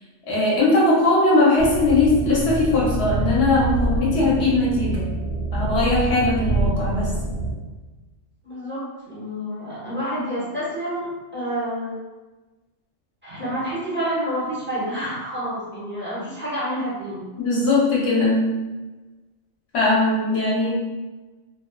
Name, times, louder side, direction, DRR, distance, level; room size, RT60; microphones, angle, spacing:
voice 1, 0.3-5.1 5.5-7.1 17.4-18.4 19.7-20.7, left 2 dB, 60° left, -6 dB, 1.0 m, -19 dB
sound 1, 1.6-7.5, right 2 dB, 80° right, 1.0 m, -26 dB
voice 2, 8.4-11.9 13.2-17.2, equal, 10° right, -11 dB, 0.8 m, -28 dB
2.6 x 2.2 x 2.2 m, 1.2 s
omnidirectional pair, 1.4 m